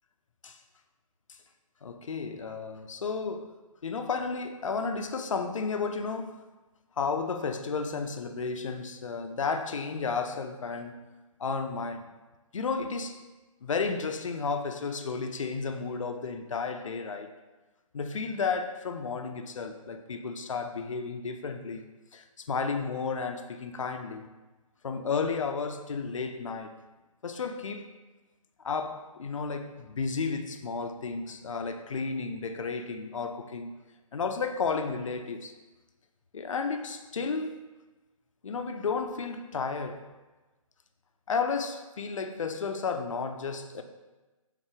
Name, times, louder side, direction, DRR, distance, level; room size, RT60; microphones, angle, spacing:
voice 1, 1.8-3.5 3.8-6.4 7.0-11.0 11.4-12.1 12.5-13.2 13.6-17.3 17.9-21.8 22.1-24.3 24.8-26.8 27.2-27.9 28.6-33.7 34.1-35.5 36.3-37.7 38.4-40.0 41.3-43.8, left 5 dB, 60° left, 0.4 m, -32 dB
3.6 x 2.8 x 4.7 m
hypercardioid pair, 180°, 18 cm